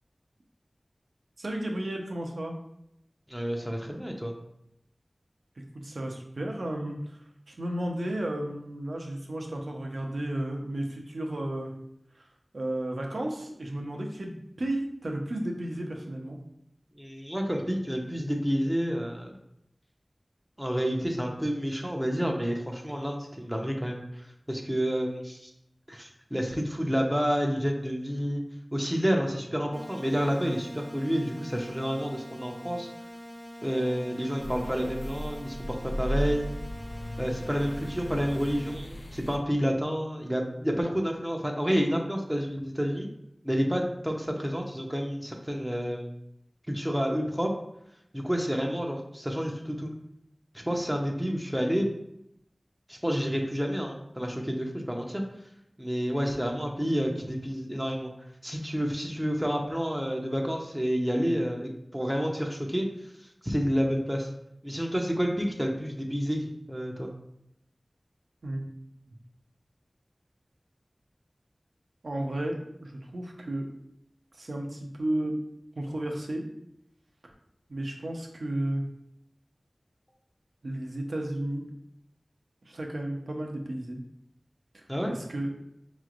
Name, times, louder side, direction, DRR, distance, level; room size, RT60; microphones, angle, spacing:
voice 1, 1.4-2.6 5.8-7.2 7.5-11.7 12.1-12.3 12.5-16.4 68.4-68.6 72.0-73.6 74.3-75.4 75.8-76.5 77.7-78.8 80.6-81.6 82.7-84.0 84.7-85.5, right 1 dB, 85° right, 1 dB, 0.7 m, -33 dB
voice 2, 3.3-4.3 17.0-19.3 20.6-25.5 25.9-28.4 28.7-32.9 33.6-36.5 37.2-43.1 43.4-46.1 46.7-47.5 48.1-49.9 50.5-51.9 52.9-55.2 55.8-58.1 58.4-62.9 63.4-64.3 64.6-67.1 84.9-85.1, equal, 5° right, 1 dB, 0.6 m, -29 dB
sound 1, 29.7-38.7, equal, 20° left, 1.0 m, -44 dB
sound 2, 34.4-39.4, equal, 55° left, 0.5 m, -36 dB
4.9 x 3.0 x 2.5 m, 0.79 s
wide cardioid pair, 55°, 0 cm